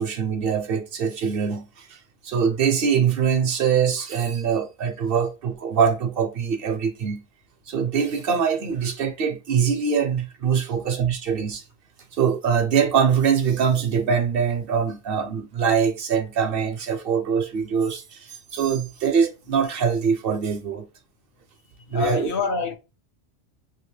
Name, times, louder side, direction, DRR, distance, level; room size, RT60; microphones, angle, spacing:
voice 1, 0.0-2.0 2.2-7.2 7.7-11.6 12.1-20.9 21.9-22.3, right 7 dB, 65° right, 0.7 m, -23 dB
voice 2, 21.9-22.8, left 4 dB, 60° left, 0.8 m, -27 dB
3.0 x 2.8 x 3.1 m
omnidirectional pair, 1.1 m